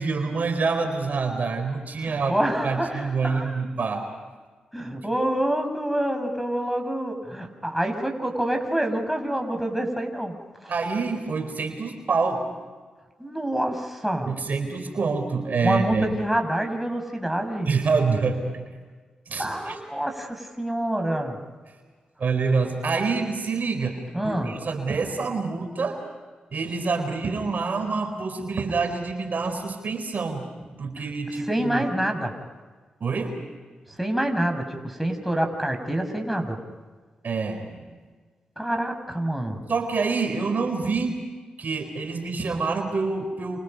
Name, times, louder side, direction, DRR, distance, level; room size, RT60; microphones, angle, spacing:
voice 1, 0.0-2.4 2.6-4.1 10.7-12.4 14.2-16.1 17.7-18.6 19.3-19.8 22.2-26.0 26.5-30.5 30.7-31.8 33.0-33.4 37.2-37.9 39.7-41.2 41.6-43.6, right 4 dB, 60° right, 5 dB, 4.3 m, -26 dB
voice 2, 2.1-3.6 4.7-10.7 13.2-14.3 15.6-17.7 19.4-21.4 24.1-24.5 31.5-32.3 34.0-36.6 38.6-39.6, right 1 dB, ahead, 4 dB, 6.4 m, -27 dB
29.0 x 29.0 x 5.4 m, 1.4 s
supercardioid pair, 40°, 3 cm